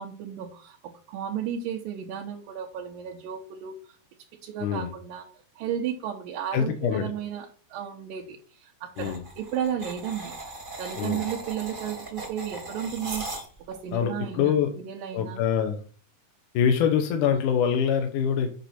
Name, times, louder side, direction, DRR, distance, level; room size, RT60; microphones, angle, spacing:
voice 1, 0.0-3.8 4.4-5.3 5.6-10.3 10.8-13.3 13.7-15.4, right 9 dB, 85° right, 0 dB, 2.7 m, -33 dB
voice 2, 6.5-7.1 9.0-9.2 11.0-11.2 13.9-14.7 15.1-15.8 16.5-18.5, left 8 dB, 75° left, 5 dB, 2.3 m, -24 dB
sound 1, 9.0-13.8, right 2 dB, 25° right, 1.1 m, -38 dB
8.1 x 6.0 x 4.3 m, 0.39 s
omnidirectional pair, 3.9 m